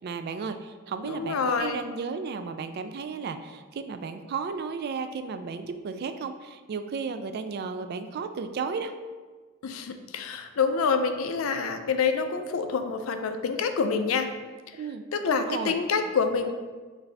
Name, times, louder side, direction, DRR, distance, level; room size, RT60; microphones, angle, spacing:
voice 1, 0.0-8.9 14.7-15.7, right 5 dB, 50° right, 9 dB, 0.3 m, -34 dB
voice 2, 1.0-1.8 9.6-14.3 15.1-16.5, left 5 dB, 75° left, 7 dB, 0.4 m, -27 dB
6.0 x 2.7 x 3.3 m, 1.4 s
head